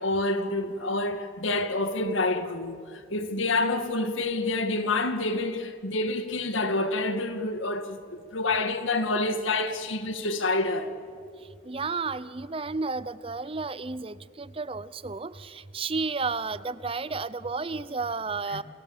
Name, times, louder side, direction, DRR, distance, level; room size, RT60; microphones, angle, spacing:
voice 1, 0.0-11.0 18.5-18.6, left 2 dB, 80° left, 2.1 m, -28 dB
voice 2, 11.6-18.6, right 4 dB, 30° right, 0.6 m, -32 dB
29.5 x 26.0 x 7.3 m
head